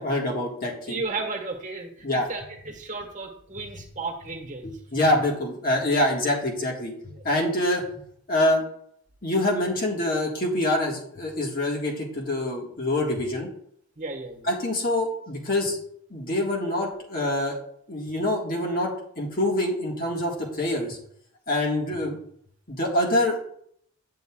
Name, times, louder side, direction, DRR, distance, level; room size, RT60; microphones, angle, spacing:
voice 1, 0.0-1.0 2.0-2.2 4.6-7.9 8.3-8.6 9.2-13.5 14.5-15.8 16.1-17.6 17.9-21.0 21.5-22.2 22.7-23.4, left 1 dB, 40° left, -1 dB, 1.6 m, -25 dB
voice 2, 0.9-4.7 7.1-7.2 14.0-14.5, right 3 dB, 35° right, 3 dB, 1.3 m, -34 dB
9.2 x 7.8 x 2.3 m, 0.65 s
head